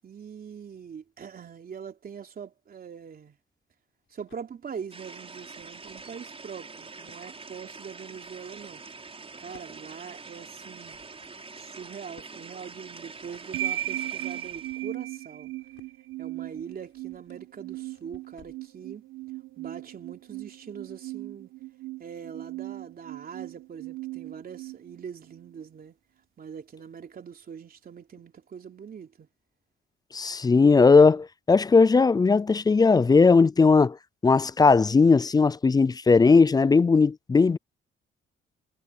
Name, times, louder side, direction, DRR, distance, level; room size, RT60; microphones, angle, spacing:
voice 1, 0.0-3.4 4.1-8.8 9.4-11.0 11.5-15.5 16.2-19.0 19.6-21.5 22.0-26.0 26.4-29.3, right 7 dB, 50° right, 3.3 m, -42 dB
sound 1, 4.0-4.5 5.3-6.1 6.6-7.2 7.8-18.7, left 12 dB, 75° left, 7.3 m, -61 dB
sound 2, 4.9-14.9, right 4 dB, 30° right, 6.2 m, -45 dB
sound 3, 13.5-25.6, right 14 dB, 80° right, 1.3 m, -37 dB
voice 2, 30.1-34.0 34.2-37.6, left 4 dB, 20° left, 0.4 m, -18 dB
cardioid pair, 90°, 20 cm